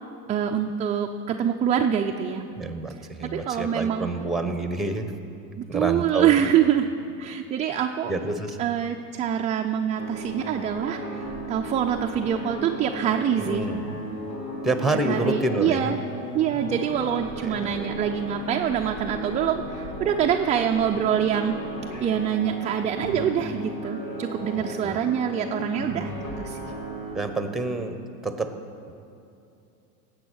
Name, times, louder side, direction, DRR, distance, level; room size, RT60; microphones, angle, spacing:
voice 1, 0.3-2.4 3.3-4.1 5.6-6.9 7.2-8.1 8.6-13.6 15.0-16.0 16.3-21.6 22.0-26.1 26.4-26.7, right 9 dB, 15° right, 2 dB, 0.4 m, -25 dB
voice 2, 2.6-5.1 5.7-6.4 8.1-8.6 13.4-13.8 14.6-15.9 17.4-17.8 24.8-25.0 27.1-28.0 28.2-28.5, right 2 dB, ahead, 8 dB, 1.0 m, -28 dB
sound 1, 10.0-27.1, right 1 dB, 80° left, 4.1 m, -35 dB
17.0 x 8.2 x 6.3 m, 2.7 s
supercardioid pair, 115°, 43 cm